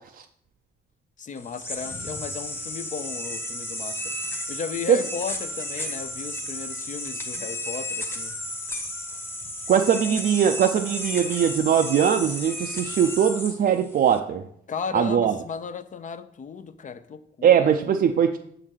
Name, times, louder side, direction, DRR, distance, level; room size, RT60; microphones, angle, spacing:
voice 1, 1.2-4.0 4.5-8.3 14.7-17.7, left 6 dB, 40° left, 0.6 m, -35 dB
sound 1, 1.4-14.2, left 1 dB, 10° left, 1.0 m, -33 dB
voice 2, 9.7-14.4 14.9-15.3 17.4-18.4, right 8 dB, 50° right, 0.4 m, -21 dB
6.5 x 3.9 x 6.2 m
cardioid pair, 90°, 20 cm